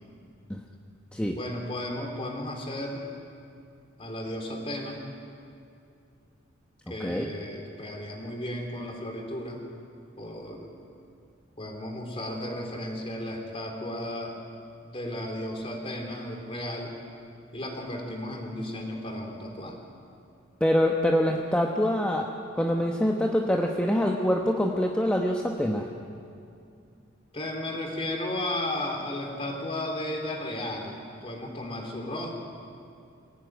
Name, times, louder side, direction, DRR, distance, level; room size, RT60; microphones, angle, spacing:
voice 1, 1.3-3.1 4.0-5.0 6.9-9.6 10.2-10.7 11.6-14.4 14.8-16.9 17.5-19.8 27.3-32.4, left 1 dB, 30° left, 2 dB, 3.5 m, -34 dB
voice 2, 7.0-7.3 20.6-22.3 22.5-25.9, equal, 5° left, 1 dB, 1.0 m, -25 dB
25.0 x 16.5 x 9.3 m, 2.5 s
head